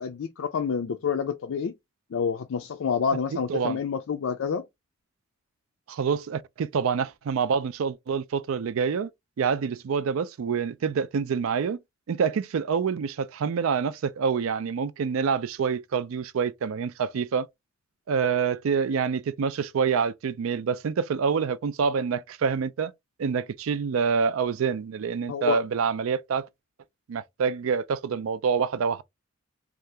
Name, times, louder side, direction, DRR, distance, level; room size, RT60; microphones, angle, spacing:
voice 1, 0.0-1.7 2.1-4.7 25.3-25.6, left 6 dB, 85° left, 0.4 m, -28 dB
voice 2, 3.3-3.8 5.9-9.1 9.4-11.8 12.1-17.5 18.1-22.9 23.2-26.5 27.1-29.0, right 6 dB, 90° right, 0.4 m, -26 dB
2.7 x 2.4 x 3.3 m
head